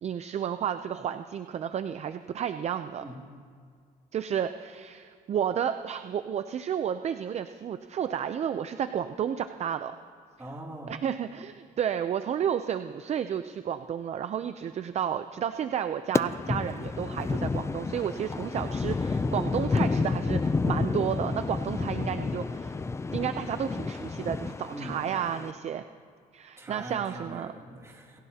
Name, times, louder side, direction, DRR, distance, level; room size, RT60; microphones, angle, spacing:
voice 1, 0.0-3.0 4.1-10.0 10.9-22.8 23.1-25.8 26.3-27.5, right 9 dB, 40° right, 10 dB, 0.5 m, -31 dB
voice 2, 10.4-11.0 24.7-25.0 26.6-28.2, right 1 dB, 15° right, -1 dB, 2.8 m, -41 dB
sound 1, 16.2-25.5, left 4 dB, 15° left, 0.4 m, -30 dB
28.5 x 15.0 x 2.9 m, 2.2 s
cardioid pair, 110°, 17 cm